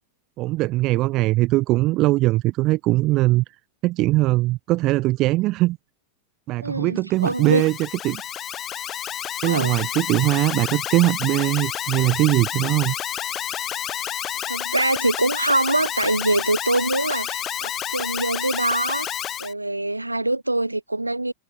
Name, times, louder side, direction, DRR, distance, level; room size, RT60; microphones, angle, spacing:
voice 1, 0.4-3.4 3.8-5.8 6.5-7.7 8.0-8.2 9.4-12.9, right 18 dB, 40° right, 0.8 m, -21 dB
voice 2, 6.6-7.7 9.5-9.8 14.5-19.1 19.4-21.3, right 2 dB, 85° right, 0.8 m, -24 dB
Alarm, 7.2-19.5, left 11 dB, 30° left, 0.7 m, -30 dB
figure-of-eight pair, 90°, 0 cm